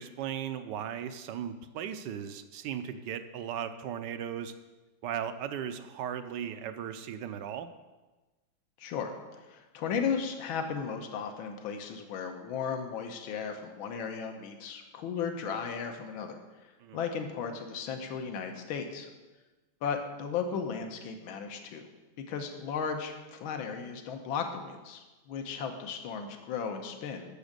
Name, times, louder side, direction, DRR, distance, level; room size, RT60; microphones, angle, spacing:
voice 1, 0.0-4.5 5.0-7.7 16.8-17.0, right 9 dB, 70° right, 10 dB, 1.1 m, -37 dB
voice 2, 8.8-19.1 19.8-21.9 22.3-27.3, left 6 dB, 75° left, 5 dB, 1.8 m, -35 dB
10.0 x 7.1 x 6.7 m, 1.2 s
omnidirectional pair, 2.3 m